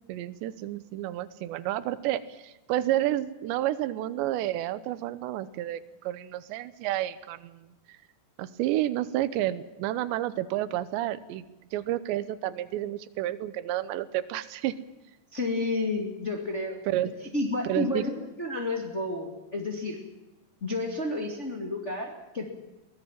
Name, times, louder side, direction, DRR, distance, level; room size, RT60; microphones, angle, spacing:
voice 1, 0.1-7.7 8.4-11.4 11.7-14.8 16.9-17.1 17.6-18.0, right 14 dB, 85° right, 15 dB, 3.1 m, -30 dB
voice 2, 15.3-16.8 17.3-20.0 20.6-22.5, left 2 dB, 25° left, 2 dB, 1.6 m, -31 dB
22.5 x 18.5 x 7.4 m, 1.0 s
omnidirectional pair, 5.0 m